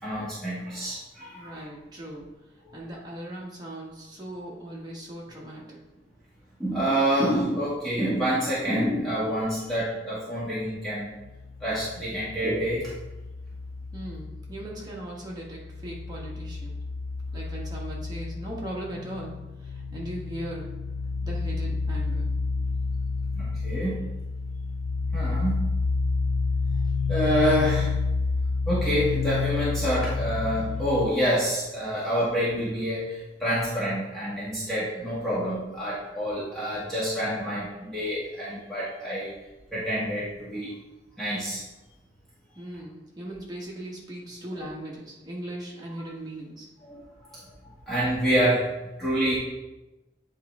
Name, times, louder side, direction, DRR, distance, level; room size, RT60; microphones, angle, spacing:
voice 1, 0.0-1.5 2.7-2.8 6.6-11.1 11.6-12.9 23.3-24.0 25.1-25.5 27.1-27.9 28.7-39.3 39.7-40.7 41.2-41.6 46.8-47.0 47.9-48.7 49.0-49.4, equal, ahead, -11 dB, 1.6 m, -27 dB
voice 2, 1.3-5.8 13.9-16.8 17.3-20.7 21.2-22.3 42.5-46.7, right 1 dB, 25° right, -4 dB, 1.4 m, -39 dB
sound 1, 11.2-15.0 15.3-31.1, left 4 dB, 60° left, 0.3 m, -30 dB
8.5 x 3.9 x 3.5 m, 1.0 s
head